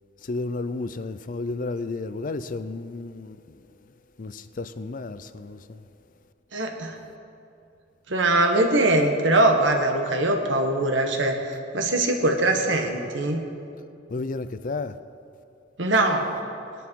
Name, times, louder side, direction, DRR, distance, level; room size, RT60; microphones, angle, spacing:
voice 1, 0.2-3.6 4.2-5.8 14.1-15.0, left 3 dB, 45° left, 0.5 m, -32 dB
voice 2, 6.5-7.0 8.1-13.4 15.8-16.3, right 2 dB, 75° right, 1.6 m, -22 dB
19.5 x 10.5 x 4.6 m
head